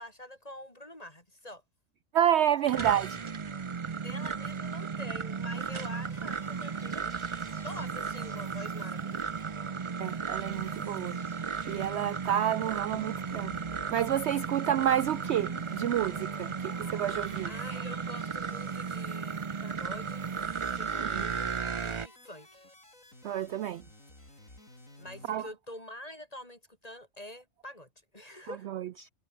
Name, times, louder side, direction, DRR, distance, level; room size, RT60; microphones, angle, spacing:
voice 1, 0.0-1.6 2.7-3.2 3.9-7.1 7.6-9.3 17.5-20.3 20.7-21.5 21.8-22.5 25.0-28.7, left 1 dB, 25° left, 6.5 m, -46 dB
voice 2, 2.1-3.1 10.0-11.2 11.7-17.5 21.0-21.3 23.2-23.8 25.3-25.5 28.7-29.1, right 10 dB, 65° right, 0.8 m, -29 dB
sound 1, 2.4-22.1, right 5 dB, 35° right, 0.5 m, -35 dB
sound 2, 5.5-9.9 10.2-10.3 10.4-25.4, left 1 dB, 70° left, 8.1 m, -54 dB
omnidirectional pair, 1.4 m